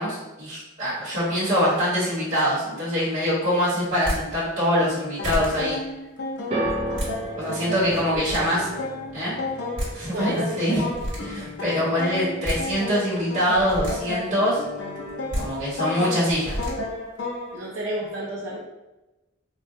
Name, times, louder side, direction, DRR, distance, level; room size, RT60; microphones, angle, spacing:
voice 1, 0.0-5.8 7.3-8.6 9.1-9.3 9.9-10.8 11.2-14.6 15.4-16.7, equal, 45° right, -11 dB, 1.0 m, -24 dB
sound 1, 3.9-4.2 4.9-5.0 5.2-5.5 6.7-7.1 7.8-8.4 9.5-9.6 9.8-9.9 10.7-11.2 12.2-12.6 13.5-13.9 15.1-15.4 16.3-16.7, equal, 65° right, 1.2 m, -29 dB
sound 2, 4.8-17.6, left 2 dB, 60° left, 0.5 m, -33 dB
sound 3, 6.5-12.8 13.0-13.7 14.4-14.5, right 1 dB, 30° right, 0.4 m, -35 dB
voice 2, 7.9-8.7 10.1-10.8 11.3-11.8 17.5-18.6, right 1 dB, 85° right, -4 dB, 0.5 m, -33 dB
3.7 x 2.1 x 2.6 m, 1.1 s
head